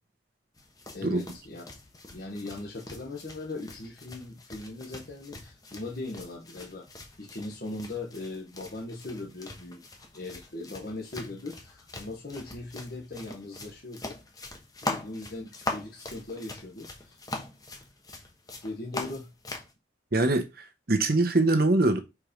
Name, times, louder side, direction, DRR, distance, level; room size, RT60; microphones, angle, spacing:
sound 1, 0.6-19.7, left 2 dB, 20° left, 1.1 m, -42 dB
voice 1, 0.9-1.6 2.1-9.8 10.1-14.1 14.8-17.2 18.6-19.3, left 2 dB, 50° left, 1.2 m, -39 dB
voice 2, 20.1-22.0, right 2 dB, 50° right, 1.1 m, -23 dB
4.7 x 4.3 x 5.2 m
head